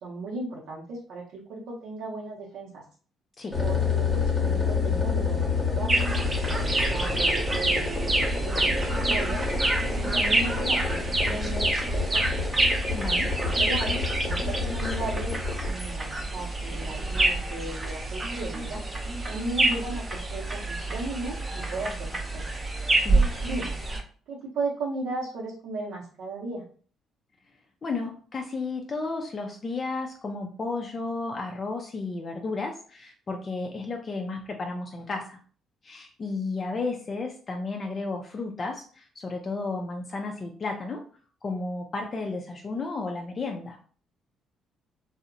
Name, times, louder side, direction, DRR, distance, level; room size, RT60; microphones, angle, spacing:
voice 1, 0.0-2.8 3.6-5.9 6.4-9.4 9.9-12.4 13.3-15.3 15.6-18.8 19.3-22.5 23.4-23.8 24.3-26.6, right 2 dB, 80° right, -4 dB, 0.6 m, -36 dB
sound 1, 3.5-15.7, left 4 dB, 15° left, 0.7 m, -29 dB
sound 2, 5.9-24.0, right 2 dB, 20° right, 0.5 m, -27 dB
voice 2, 12.9-13.3 23.0-23.3 27.8-35.4 35.8-41.0 41.4-43.8, left 3 dB, 35° left, 2 dB, 0.3 m, -33 dB
2.7 x 2.0 x 2.5 m, 0.42 s
cardioid pair, 115°, 0 cm